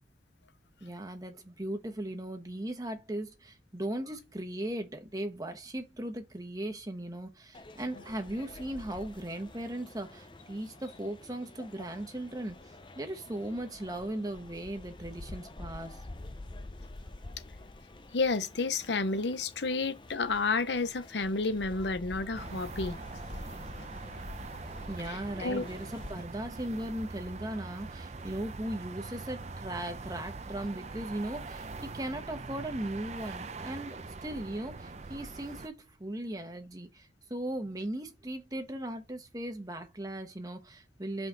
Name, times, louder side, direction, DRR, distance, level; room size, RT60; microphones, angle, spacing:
voice 1, 0.8-16.0 24.9-41.3, right 1 dB, 20° right, 1.1 m, -38 dB
sound 1, 7.5-26.2, left 2 dB, 25° left, 0.6 m, -48 dB
voice 2, 18.1-23.0 25.1-25.6, left 3 dB, 75° left, 0.8 m, -31 dB
sound 2, 22.3-35.7, right 3 dB, 40° right, 0.6 m, -43 dB
5.7 x 4.4 x 3.9 m
head